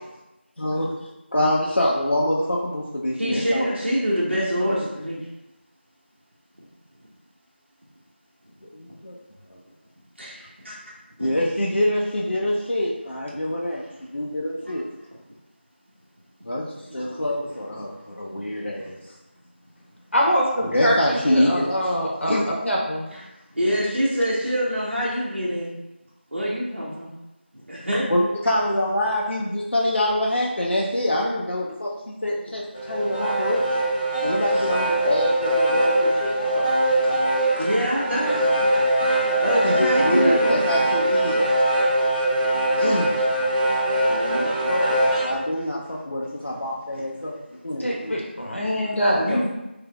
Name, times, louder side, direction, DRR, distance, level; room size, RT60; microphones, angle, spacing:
voice 1, 0.6-0.9 1.3-3.6 8.7-9.1 9.5-9.6 11.2-13.8 14.1-14.8 16.4-18.9 20.6-21.9 22.3-22.4 28.1-33.6 34.2-36.7 37.0-37.1 37.6-37.7 39.6-41.5 42.8-43.1 44.3-47.4 47.6-48.1 49.3-49.5, left 1 dB, 70° left, -3 dB, 0.5 m, -25 dB
voice 2, 3.2-5.2 8.9-9.0 10.2-10.3 10.7-10.8 14.6-14.7 18.7-18.9 23.1-23.3 23.5-25.8 26.3-27.1 27.7-28.1 34.5-34.7 37.1-37.2 37.6-40.7 44.1-45.1 48.1-48.2 48.8-48.9 49.2-49.5, equal, 70° right, -6 dB, 1.0 m, -26 dB
voice 3, 20.1-22.3 22.6-23.1 47.8-49.2, equal, 85° left, -2 dB, 1.0 m, -23 dB
sound 1, 32.7-45.4, right 1 dB, 10° left, 0.8 m, -22 dB
3.3 x 3.3 x 2.3 m, 0.94 s
figure-of-eight pair, 180°, 6 cm